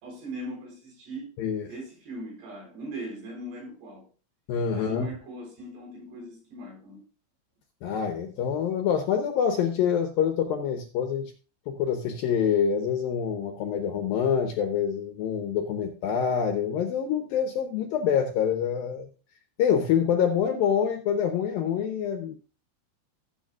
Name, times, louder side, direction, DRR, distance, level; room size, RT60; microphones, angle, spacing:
voice 1, 0.0-1.3 1.7-4.1 4.7-7.0, right 1 dB, 70° right, 6.1 m, -40 dB
voice 2, 1.4-1.7 4.5-5.1 7.8-11.3 11.7-19.1 19.6-22.4, left 8 dB, 75° left, 2.2 m, -26 dB
15.0 x 8.2 x 2.4 m
omnidirectional pair, 5.1 m